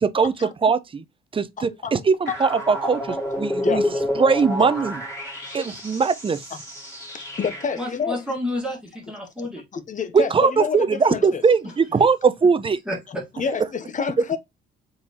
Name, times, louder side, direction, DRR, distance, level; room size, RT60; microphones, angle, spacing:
voice 1, 0.0-1.0 1.3-3.8 4.2-5.0 5.5-6.4 10.1-12.8, right 5 dB, 25° right, 0.5 m, -20 dB
voice 2, 1.6-1.9 3.6-4.0 4.6-4.7 5.5-5.6 7.1-8.2 9.4-11.4 13.1-14.4, left 6 dB, 40° left, 0.8 m, -29 dB
sound 1, 2.3-8.0, left 1 dB, 15° left, 2.6 m, -29 dB
voice 3, 7.8-9.6 12.8-13.3, left 1 dB, 5° right, 1.7 m, -30 dB
4.3 x 3.8 x 2.9 m
cardioid pair, 90°, 20 cm